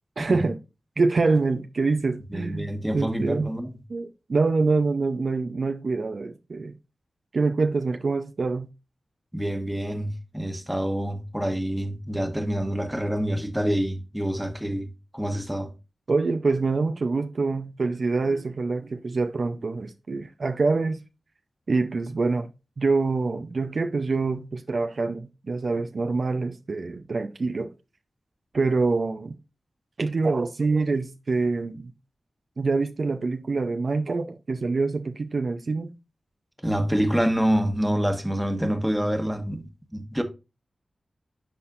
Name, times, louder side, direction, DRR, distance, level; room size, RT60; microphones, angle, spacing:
voice 1, 0.2-0.6 1.0-3.5 3.9-6.7 7.3-8.7 16.1-21.0 21.7-22.5 22.8-27.7 28.5-29.3 30.0-31.9 32.6-35.9, right 3 dB, 60° right, 0.6 m, -25 dB
voice 2, 2.3-3.8 9.3-15.7 36.6-40.2, equal, 5° right, 1.3 m, -27 dB
11.5 x 4.2 x 2.5 m
cardioid pair, 55°, 0 cm